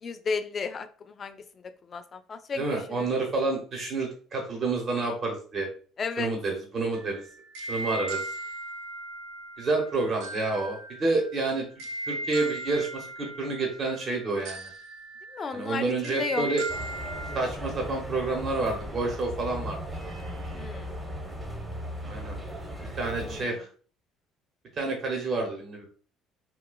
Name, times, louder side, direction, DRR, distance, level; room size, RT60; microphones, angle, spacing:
voice 1, 0.0-3.1 6.0-6.3 15.3-16.5 20.5-21.0 23.0-23.5, left 5 dB, 40° left, 9 dB, 0.4 m, -34 dB
voice 2, 2.6-5.7 6.2-7.2 7.7-8.2 9.6-11.6 12.0-14.7 15.5-16.6 17.3-19.8 22.1-22.4 22.9-23.7 24.8-25.9, right 3 dB, 45° right, 1 dB, 0.8 m, -29 dB
sound 1, 6.9-17.4, right 2 dB, 80° right, 0.4 m, -38 dB
sound 2, 16.7-23.4, equal, 20° right, 0.8 m, -37 dB
3.9 x 2.4 x 2.2 m, 0.41 s
supercardioid pair, 75°, 0 cm